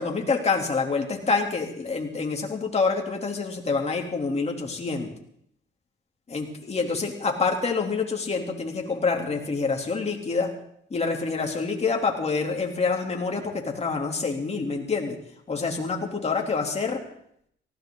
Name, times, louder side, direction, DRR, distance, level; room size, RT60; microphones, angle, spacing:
voice 1, 0.0-5.1 6.3-10.5 10.9-15.2 15.5-17.0, left 4 dB, 30° left, 1 dB, 3.1 m, -27 dB
18.5 x 16.5 x 3.9 m, 0.69 s
cardioid pair, 90°, 20 cm